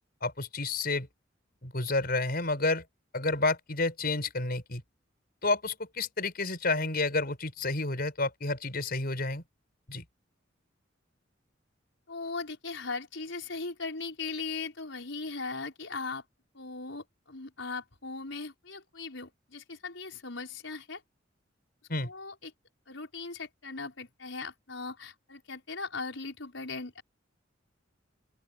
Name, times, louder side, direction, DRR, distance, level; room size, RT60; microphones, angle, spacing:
voice 1, 0.2-1.1 1.6-2.8 3.1-4.8 5.4-9.4 9.9-10.0 21.9-22.1, left 3 dB, 55° left, 5.2 m, -30 dB
voice 2, 12.1-16.2 16.5-21.0 22.0-22.5 22.9-27.0, left 4 dB, 80° left, 5.5 m, -39 dB
open air
head